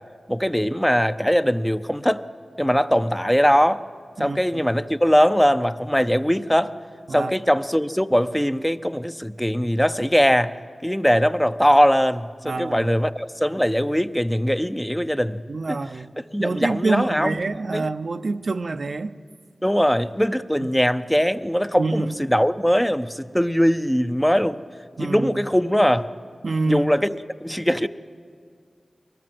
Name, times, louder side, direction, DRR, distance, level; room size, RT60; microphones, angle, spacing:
voice 1, 0.3-2.2 2.6-3.8 4.2-6.7 7.1-10.5 10.8-15.4 15.7-15.8 16.3-17.4 17.7-17.9 19.6-24.6 25.0-26.1 26.7-27.9, equal, 5° left, 0.6 m, -21 dB
voice 2, 4.2-4.7 7.1-7.3 12.4-12.9 15.5-16.1 16.4-19.1 21.8-22.3 25.0-25.3 26.4-26.9, right 3 dB, 65° right, 0.6 m, -26 dB
23.5 x 20.0 x 7.7 m
wide cardioid pair, 75°, 0 cm